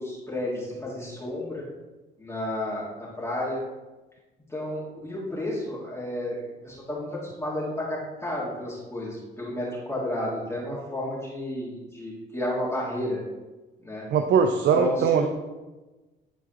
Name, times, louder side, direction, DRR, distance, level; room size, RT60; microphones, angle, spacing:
voice 1, 0.0-1.6 2.2-2.8 3.2-3.6 4.5-6.4 6.6-13.2 13.8-14.1 14.7-15.3, left 1 dB, 15° left, -7 dB, 1.8 m, -31 dB
voice 2, 14.1-15.3, right 6 dB, 65° right, 7 dB, 0.5 m, -21 dB
10.0 x 4.0 x 2.9 m, 1.2 s
cardioid pair, 90°, 20 cm